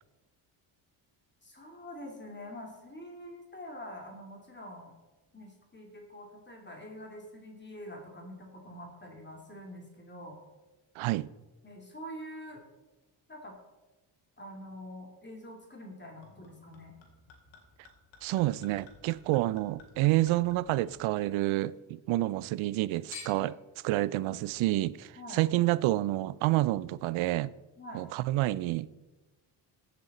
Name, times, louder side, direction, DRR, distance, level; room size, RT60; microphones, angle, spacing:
voice 1, 1.4-4.9 5.3-10.4 11.6-12.6 13.3-13.6 14.4-17.0 25.1-25.4 27.8-28.1, equal, 20° left, 2.8 m, -45 dB
voice 2, 11.0-11.3 18.2-23.6 23.8-27.5 27.9-28.9, right 17 dB, 85° right, 0.5 m, -28 dB
Chink clink / Liquid, 16.2-21.7 22.1-22.8 23.1-23.6 24.4-24.5, left 5 dB, 70° left, 2.8 m, -53 dB
15.0 x 6.8 x 4.3 m
cardioid pair, 80°, 47 cm